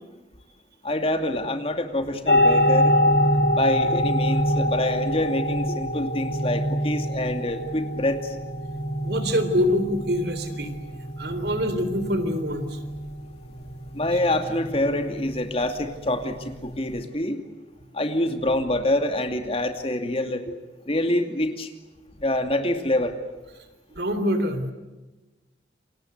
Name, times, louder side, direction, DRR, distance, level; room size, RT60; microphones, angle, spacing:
voice 1, 0.8-3.0 3.5-8.4 13.9-17.4 17.9-20.5 20.9-21.7 22.2-23.2, left 1 dB, 35° left, 7 dB, 2.5 m, -26 dB
sound 1, 2.3-17.0, left 1 dB, 65° left, 2.6 m, -25 dB
voice 2, 9.0-10.8 11.2-12.8 14.1-14.2 23.9-24.7, equal, 65° right, 10 dB, 3.6 m, -25 dB
28.5 x 25.0 x 8.0 m, 1.1 s
head